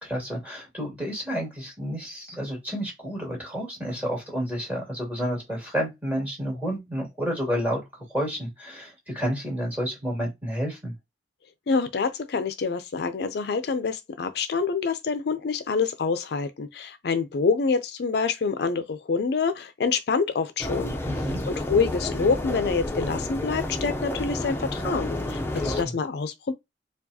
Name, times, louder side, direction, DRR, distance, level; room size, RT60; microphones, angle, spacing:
voice 1, 0.0-10.9 21.0-21.4 25.6-25.9, equal, 10° right, 2.1 m, -30 dB
voice 2, 11.7-20.9 21.5-26.5, left 5 dB, 65° left, 0.4 m, -26 dB
sound 1, 20.6-25.8, left 1 dB, 15° left, 0.5 m, -30 dB
4.5 x 2.3 x 2.7 m
head